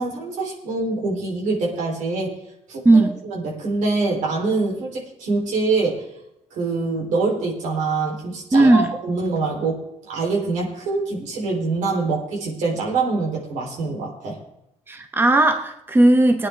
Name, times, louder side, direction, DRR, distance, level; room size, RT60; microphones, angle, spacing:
voice 1, 0.0-2.4 2.7-6.0 6.5-14.4, right 3 dB, 90° right, -1 dB, 3.6 m, -25 dB
voice 2, 2.8-3.2 8.5-8.9 14.9-16.5, right 2 dB, 15° right, 6 dB, 1.0 m, -16 dB
19.0 x 9.6 x 3.5 m, 0.86 s
cardioid pair, 105°, 12 cm